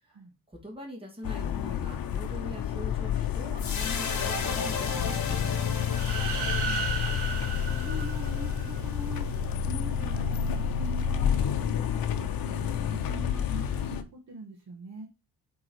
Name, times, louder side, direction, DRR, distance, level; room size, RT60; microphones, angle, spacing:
voice 1, 0.5-5.9, equal, 15° right, -1 dB, 2.6 m, -43 dB
sound 1, 1.2-14.0, left 8 dB, 60° left, 0.9 m, -30 dB
sound 2, 3.6-10.0, left 4 dB, 45° left, 1.6 m, -36 dB
sound 3, 5.9-8.8, right 5 dB, 85° right, 2.2 m, -35 dB
voice 2, 6.2-6.9 7.4-9.3 9.6-15.1, right 1 dB, 45° right, 0 dB, 1.6 m, -42 dB
8.7 x 3.8 x 4.7 m, 0.27 s
wide cardioid pair, 175°, 39 cm